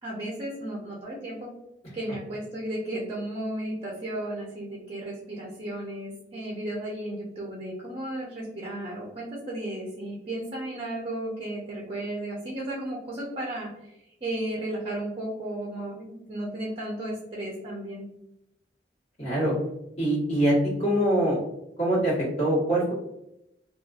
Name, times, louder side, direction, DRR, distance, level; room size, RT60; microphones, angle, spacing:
voice 1, 0.0-1.5 1.9-18.1, right 1 dB, 30° right, -4 dB, 0.6 m, -34 dB
voice 2, 19.2-19.6 20.0-21.4 21.8-22.9, right 1 dB, 35° left, -8 dB, 1.4 m, -24 dB
2.9 x 2.3 x 2.4 m, 0.83 s
head